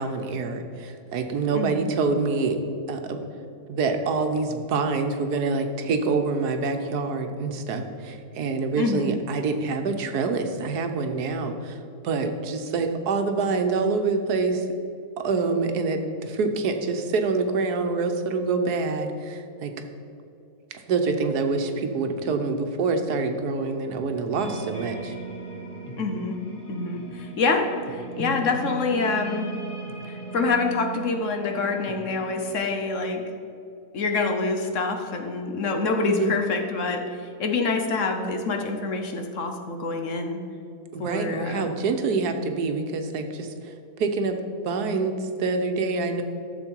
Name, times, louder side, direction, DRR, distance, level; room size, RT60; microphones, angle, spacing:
voice 1, 0.0-2.6 2.9-3.2 3.7-11.8 12.0-14.7 15.2-19.7 20.9-25.1 36.1-36.3 40.9-43.7 44.0-44.4 44.6-46.2, right 4 dB, 85° right, 6 dB, 1.4 m, -26 dB
voice 2, 8.8-9.1 26.0-26.4 26.7-29.5 30.0-33.2 33.9-40.4 41.0-41.7, left 3 dB, 55° left, 4 dB, 1.2 m, -26 dB
sound 1, 24.3-32.5, right 3 dB, 35° left, 1.3 m, -37 dB
13.5 x 7.2 x 4.6 m, 2.7 s
omnidirectional pair, 1.6 m